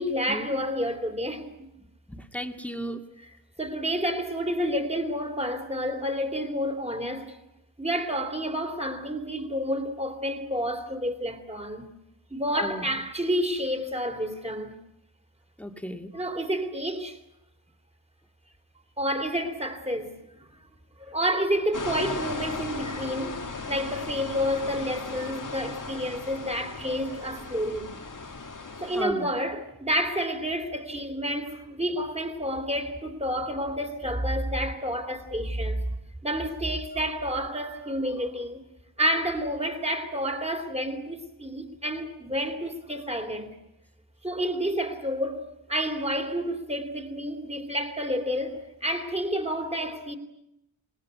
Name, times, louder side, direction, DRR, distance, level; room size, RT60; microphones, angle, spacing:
voice 1, 0.0-1.7 3.6-7.4 7.8-11.9 12.3-14.8 16.1-17.2 19.0-20.4 21.0-28.0 28.8-35.8 36.2-38.6 39.0-43.5 44.2-50.2, equal, 15° right, 3.2 m, -29 dB
voice 2, 2.1-3.0 12.5-12.9 15.6-16.1 29.0-29.3, equal, 5° left, 2.2 m, -34 dB
sound 1, 21.7-29.0, left 4 dB, 45° left, 1.7 m, -37 dB
27.5 x 20.0 x 9.5 m
wide cardioid pair, 105°, 45 cm